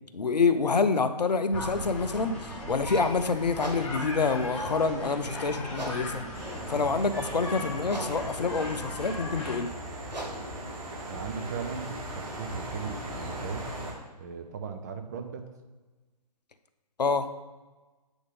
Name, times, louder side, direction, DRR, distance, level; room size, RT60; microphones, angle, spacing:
voice 1, 0.1-6.2 6.7-9.7 17.0-17.3, left 4 dB, 80° left, 10 dB, 0.6 m, -27 dB
sound 1, 1.5-9.6, equal, 5° left, 1.0 m, -37 dB
sound 2, 3.5-12.2, right 1 dB, 80° right, 1.5 m, -44 dB
sound 3, 6.3-13.9, right 1 dB, 55° right, 1.7 m, -39 dB
voice 2, 11.0-13.8 14.2-15.5, right 6 dB, 25° right, 6 dB, 0.5 m, -38 dB
7.9 x 3.6 x 3.7 m, 1.2 s
figure-of-eight pair, 135°, 21 cm